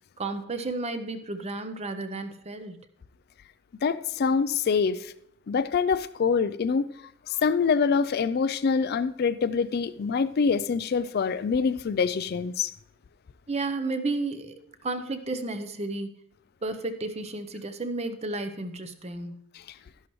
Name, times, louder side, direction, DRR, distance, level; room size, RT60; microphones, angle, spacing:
voice 1, 0.2-2.8 13.5-14.5 14.8-16.2 16.6-19.3, right 2 dB, 30° right, 9 dB, 0.8 m, -32 dB
voice 2, 3.8-5.1 5.5-6.8 7.3-12.7, left 5 dB, 50° left, 14 dB, 0.4 m, -25 dB
12.0 x 11.0 x 3.1 m, 0.76 s
head